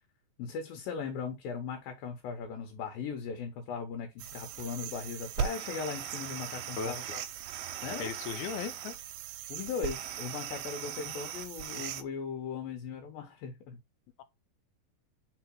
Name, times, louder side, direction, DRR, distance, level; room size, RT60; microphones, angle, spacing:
voice 1, 0.4-7.2 7.8-8.1 9.5-13.8, left 6 dB, 75° left, 2.7 m, -38 dB
sound 1, 4.2-12.0, right 10 dB, 75° right, 2.2 m, -39 dB
voice 2, 8.0-9.0 11.0-11.2 14.2-14.3, left 7 dB, 90° left, 2.6 m, -37 dB
4.8 x 4.7 x 4.6 m
omnidirectional pair, 4.4 m